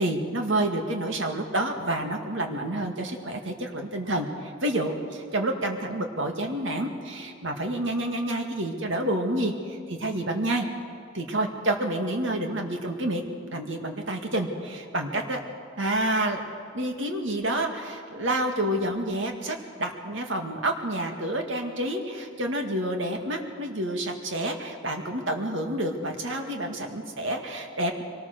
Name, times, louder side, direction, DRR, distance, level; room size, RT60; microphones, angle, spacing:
voice 1, 0.0-10.7 11.1-13.3 13.5-15.4 15.8-16.4 16.7-28.0, right 1 dB, 70° right, 4 dB, 2.1 m, -29 dB
24.0 x 18.5 x 6.6 m, 2.3 s
head